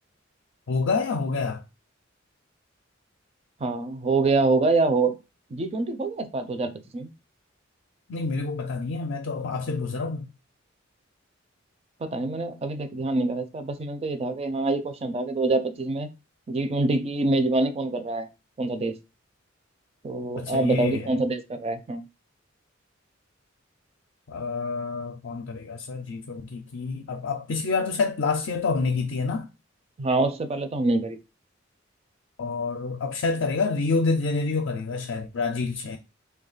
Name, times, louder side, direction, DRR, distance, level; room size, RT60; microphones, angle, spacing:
voice 1, 0.7-1.6 8.1-10.3 20.4-21.2 24.3-29.5 32.4-36.0, left 4 dB, 65° left, 0.4 m, -27 dB
voice 2, 3.6-5.1 5.5-7.1 12.0-16.1 16.5-18.3 18.6-18.9 20.0-22.0 30.0-31.2, right 2 dB, 30° right, 0.4 m, -25 dB
3.3 x 2.3 x 3.8 m
head